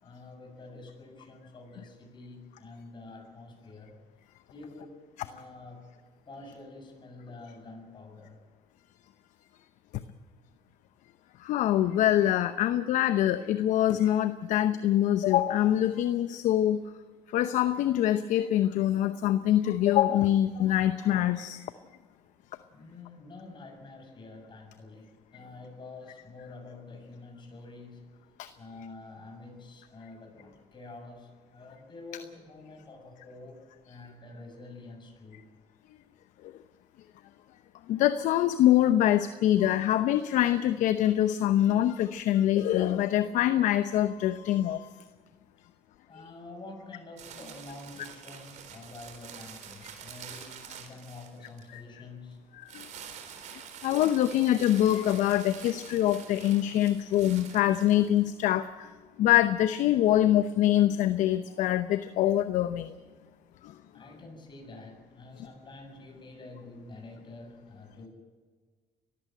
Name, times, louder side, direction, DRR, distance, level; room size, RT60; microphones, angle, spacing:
voice 1, 0.0-4.0 4.5-5.9 6.3-8.4 22.7-28.1 28.6-35.4 46.1-52.4 63.9-68.1, left 3 dB, 35° left, 3 dB, 7.1 m, -47 dB
voice 2, 11.4-16.8 17.3-21.6 28.4-28.5 37.9-44.8 51.7-51.8 52.6-52.9 53.8-58.9 59.2-62.9, left 12 dB, 70° left, 12 dB, 0.8 m, -24 dB
sound 1, 47.2-51.8 52.7-58.3, right 7 dB, 65° right, 4.0 m, -47 dB
22.0 x 15.0 x 9.1 m, 1.5 s
supercardioid pair, 75°, 13 cm